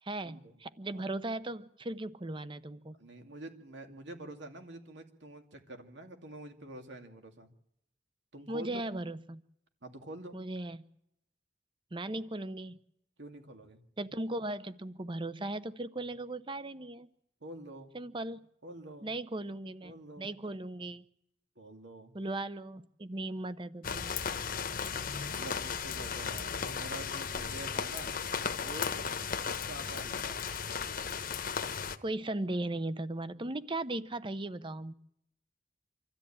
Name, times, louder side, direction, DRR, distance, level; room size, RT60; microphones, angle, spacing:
voice 1, 0.0-3.0 8.5-9.4 10.3-10.9 11.9-12.8 14.0-17.1 17.9-18.4 19.0-21.0 22.1-24.3 32.0-34.9, right 2 dB, 30° right, 14 dB, 0.8 m, -37 dB
voice 2, 3.0-7.5 8.3-8.8 9.8-10.4 13.2-13.8 17.4-17.9 18.6-19.1 19.8-20.3 21.6-22.1 25.2-28.1 28.6-28.9 29.4-30.4, right 1 dB, 85° right, 5 dB, 2.5 m, -47 dB
sound 1, 23.8-32.0, left 6 dB, 50° left, 1.0 m, -35 dB
25.5 x 13.5 x 8.7 m, 0.78 s
head